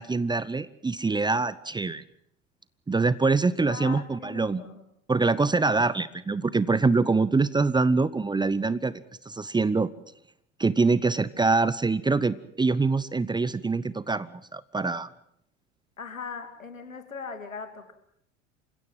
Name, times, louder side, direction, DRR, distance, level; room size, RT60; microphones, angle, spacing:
voice 1, 0.0-2.0 2.9-4.6 5.1-8.9 9.3-9.9 10.6-15.1, right 3 dB, 10° right, 18 dB, 0.8 m, -24 dB
voice 2, 3.7-4.8 16.0-17.9, left 5 dB, 85° left, 7 dB, 2.8 m, -39 dB
28.0 x 16.5 x 7.7 m, 0.71 s
figure-of-eight pair, 75°, 39 cm